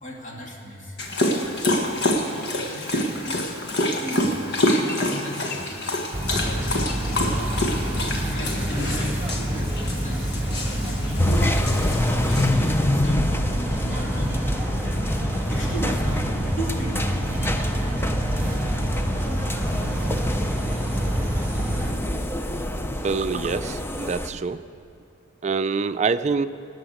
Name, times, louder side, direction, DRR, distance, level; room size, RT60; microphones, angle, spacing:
voice 1, 0.0-1.0 1.9-3.5 3.8-4.4 4.7-5.7 6.4-6.6 7.0-7.6 8.1-10.3 11.1-11.8 12.0-13.3 13.7-14.5 15.5-16.2 16.6-17.3, right 1 dB, 40° left, -2 dB, 2.6 m, -35 dB
Dog, 1.0-12.5, left 1 dB, 60° left, 1.5 m, -27 dB
sound 1, 6.1-21.9, right 1 dB, 10° right, 2.3 m, -27 dB
sound 2, 11.2-24.3, left 1 dB, 10° left, 0.6 m, -27 dB
voice 2, 23.0-24.6 25.4-26.5, right 4 dB, 35° right, 10 dB, 0.4 m, -25 dB
18.0 x 7.9 x 9.4 m, 2.5 s
head